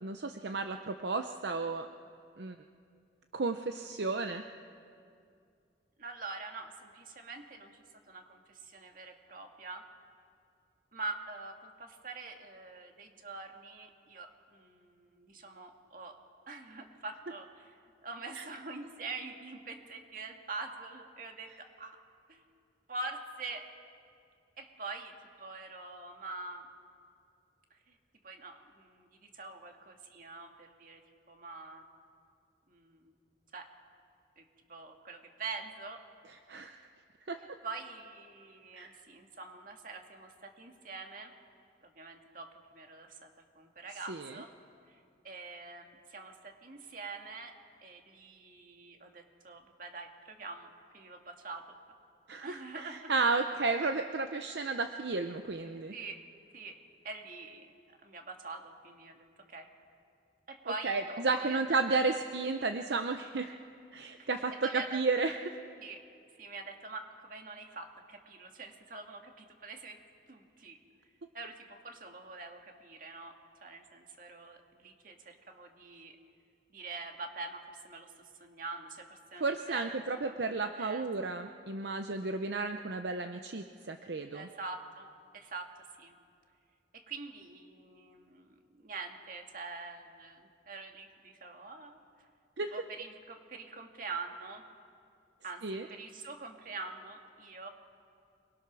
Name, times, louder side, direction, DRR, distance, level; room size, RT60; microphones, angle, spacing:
voice 1, 0.0-1.9 2.4-2.6 3.3-4.4 18.4-18.5 36.5-36.7 37.3-37.4 38.8-38.9 44.1-44.3 52.3-55.9 60.8-63.5 63.9-65.6 79.4-84.5 92.6-92.7 95.6-95.8, right 3 dB, 70° right, 7 dB, 0.7 m, -33 dB
voice 2, 6.0-9.8 10.9-16.2 16.5-17.8 18.0-22.0 22.3-22.4 22.9-23.7 24.6-26.7 27.7-28.0 28.2-31.0 31.3-31.8 32.7-33.1 33.5-33.7 34.4-34.5 34.7-36.0 37.4-41.3 41.8-44.5 44.9-45.0 45.2-47.5 47.8-51.7 52.4-53.1 55.9-56.2 56.5-56.8 57.0-59.7 60.5-62.1 64.2-65.0 65.8-66.0 66.4-70.0 70.3-70.8 71.3-76.2 76.7-81.0 84.3-85.1 85.3-85.7 86.0-86.1 86.9-92.0 92.7-94.6 95.4-97.7, right 3 dB, 50° right, 3 dB, 2.1 m, -45 dB
27.0 x 21.5 x 6.2 m, 2.3 s
head